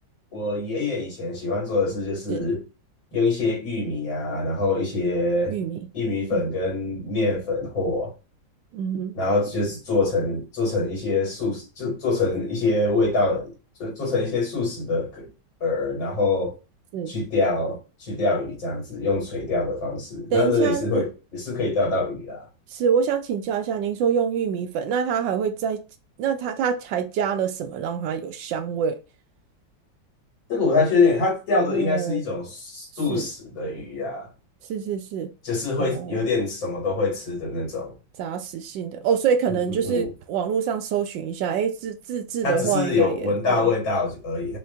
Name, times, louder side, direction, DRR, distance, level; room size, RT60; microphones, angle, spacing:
voice 1, 0.3-2.6 3.1-5.6 5.9-8.1 9.1-13.5 13.8-15.3 15.6-16.6 17.1-22.5 30.5-34.3 35.4-37.9 39.5-40.1 42.4-44.6, left 3 dB, 80° left, 2.7 m, -25 dB
voice 2, 5.5-5.8 6.3-6.4 8.7-9.1 16.9-17.1 20.3-21.0 22.7-25.8 26.2-29.0 31.6-32.2 33.1-33.3 34.7-35.3 35.8-36.1 38.2-43.7, right 7 dB, 75° right, 1.2 m, -26 dB
4.6 x 2.5 x 3.4 m
omnidirectional pair, 2.1 m